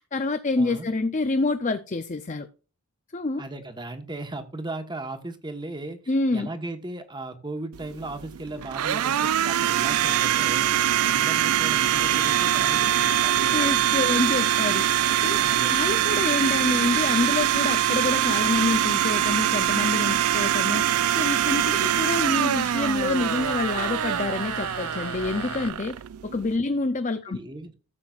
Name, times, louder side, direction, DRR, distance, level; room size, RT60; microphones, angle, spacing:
voice 1, 0.0-2.5 3.1-3.4 6.1-6.5 12.6-13.2 13.5-14.9 15.2-15.4 15.7-27.4, left 3 dB, 35° left, 0.6 m, -27 dB
voice 2, 0.6-0.9 3.4-10.7 11.0-13.8 15.4-15.8 27.3-27.7, right 2 dB, 20° right, 1.2 m, -37 dB
Domestic sounds home sounds, 7.7-26.6, right 11 dB, 75° right, 0.4 m, -23 dB
sound 1, 9.7-25.7, left 4 dB, 90° left, 1.7 m, -40 dB
14.5 x 7.6 x 2.4 m
head